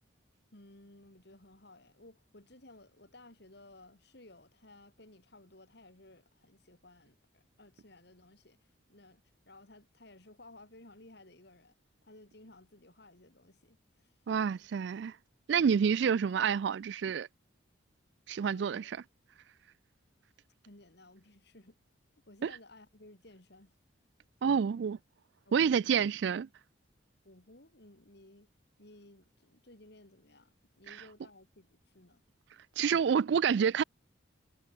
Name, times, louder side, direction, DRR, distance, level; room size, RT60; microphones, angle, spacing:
voice 1, 0.5-9.2 9.5-11.7 12.0-14.1 18.5-18.9 20.6-21.8 22.3-23.7 24.4-24.7 25.4-26.0 27.2-28.5 28.8-32.2, left 2 dB, 55° left, 3.2 m, -57 dB
voice 2, 14.3-15.2 15.5-17.3 18.3-19.0 22.4-22.5 24.4-25.0 25.5-26.5 30.9-31.0 32.8-33.8, right 7 dB, 60° right, 0.3 m, -28 dB
head